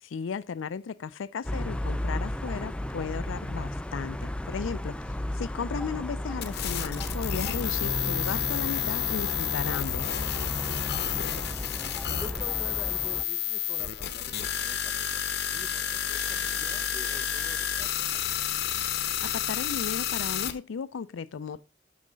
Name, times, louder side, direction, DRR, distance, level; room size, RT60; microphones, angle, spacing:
voice 1, 0.0-5.0 5.3-10.1 19.2-21.6, left 6 dB, 85° left, 0.4 m, -35 dB
sound 1, 1.4-13.2, left 1 dB, 5° left, 0.4 m, -35 dB
sound 2, 6.4-20.5, left 9 dB, 60° left, 0.9 m, -30 dB
sound 3, 7.8-10.4, right 1 dB, 75° right, 2.4 m, -41 dB
voice 2, 10.6-15.2 15.5-18.5, equal, 10° right, 0.8 m, -47 dB
6.5 x 6.2 x 5.0 m
head